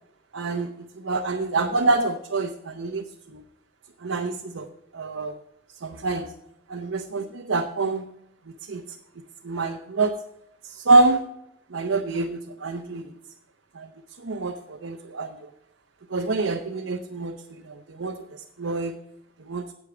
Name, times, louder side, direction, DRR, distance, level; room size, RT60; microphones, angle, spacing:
voice 1, 0.3-3.4 4.0-4.7 4.9-5.3 5.8-6.3 6.7-8.1 8.7-9.0 9.4-10.1 10.6-11.2 11.7-13.1 13.7-13.9 14.2-15.5 16.1-19.0 19.4-19.6, right 3 dB, 85° right, 3 dB, 0.8 m, -26 dB
9.7 x 8.2 x 5.0 m, 0.77 s
head